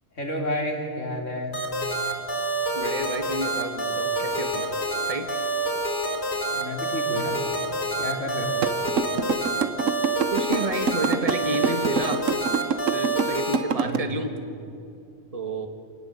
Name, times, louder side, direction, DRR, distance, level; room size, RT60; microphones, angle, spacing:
voice 1, 0.2-1.5 6.5-7.4 8.0-8.5 13.8-14.2, left 1 dB, 75° left, 1 dB, 3.9 m, -30 dB
sound 1, 1.5-13.6, right 2 dB, 55° left, 4.8 m, -27 dB
voice 2, 2.7-4.7 5.1-5.3 10.3-12.2 12.9-14.3 15.3-15.7, right 2 dB, 30° right, 6 dB, 1.8 m, -30 dB
sound 2, 8.6-14.0, right 6 dB, 90° right, 1.5 m, -24 dB
27.5 x 19.0 x 8.0 m, 2.5 s
omnidirectional pair, 1.3 m